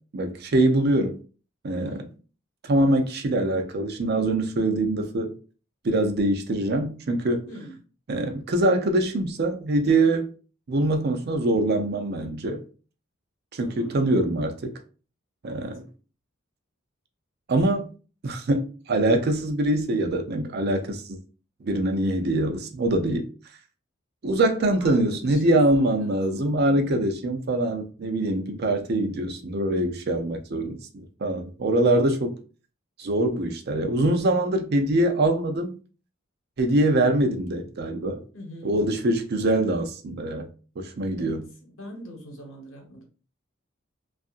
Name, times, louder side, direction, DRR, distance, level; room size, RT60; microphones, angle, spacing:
voice 1, 0.1-1.2 1.6-2.0 2.6-5.3 5.8-7.5 8.1-10.3 10.7-12.6 13.5-14.7 15.4-15.8 17.5-17.9 18.2-21.2 21.6-23.3 24.2-32.3 33.0-35.8 36.6-38.2 38.6-40.5 40.8-41.4, right 1 dB, 55° right, 0.5 m, -24 dB
voice 2, 13.6-14.1 15.5-15.7 24.8-27.0 28.9-29.3 38.3-39.1 41.2-43.0, equal, 85° left, 1.0 m, -43 dB
2.7 x 2.4 x 2.4 m
head